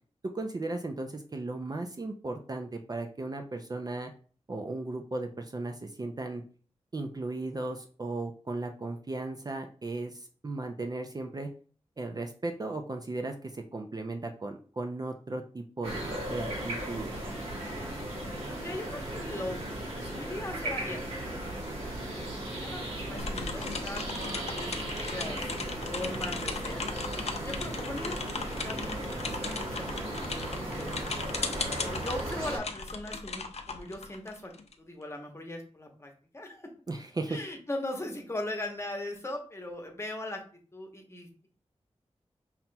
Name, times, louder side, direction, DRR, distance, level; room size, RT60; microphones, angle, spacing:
voice 1, 0.3-4.1 4.5-6.4 6.9-11.5 12.0-17.1 36.9-37.4, right 2 dB, 35° right, 4 dB, 0.4 m, -36 dB
sound 1, 15.8-32.6, right 1 dB, 65° right, 1.7 m, -36 dB
voice 2, 18.5-19.6 19.9-21.3 22.1-22.3 22.6-25.5 25.8-28.1 28.5-30.9 31.8-34.5 34.8-36.7 37.3-40.4 40.7-41.5, left 1 dB, 25° left, 2 dB, 0.9 m, -39 dB
sound 2, 23.2-34.7, left 4 dB, 65° left, 0.5 m, -37 dB
5.6 x 2.9 x 2.2 m, 0.41 s
wide cardioid pair, 95°, 11 cm